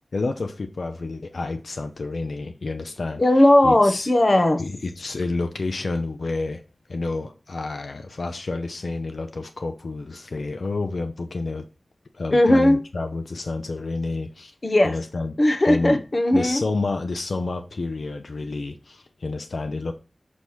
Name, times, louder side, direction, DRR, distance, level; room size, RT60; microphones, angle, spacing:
voice 1, 0.1-3.2 3.6-4.1 4.6-6.6 6.9-11.7 12.1-14.5 14.8-15.3 15.7-16.0 16.3-19.9, left 3 dB, 80° left, 0.5 m, -29 dB
voice 2, 3.2-4.6 12.3-12.8 14.6-15.0 15.4-16.6, left 1 dB, 45° left, 0.8 m, -17 dB
6.2 x 3.1 x 5.4 m
wide cardioid pair, 70°, 0 cm